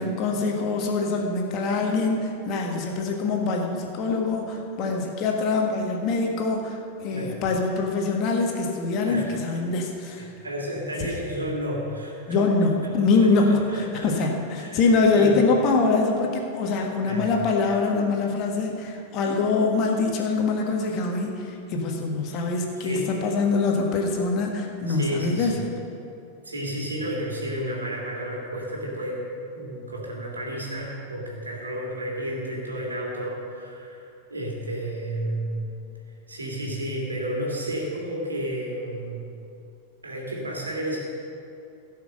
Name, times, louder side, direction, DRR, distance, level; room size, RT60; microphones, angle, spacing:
voice 1, 0.0-10.3 11.0-11.1 12.3-25.5, left 3 dB, 40° left, 1 dB, 1.6 m, -24 dB
voice 2, 9.0-9.6 10.1-12.4 12.8-14.1 14.6-15.3 17.0-17.3 22.8-23.1 24.9-25.6 26.4-29.2 29.5-35.7 36.3-39.3 40.0-41.0, right 1 dB, 75° right, -3 dB, 2.9 m, -32 dB
16.5 x 5.9 x 6.5 m, 2.6 s
figure-of-eight pair, 90°, 0 cm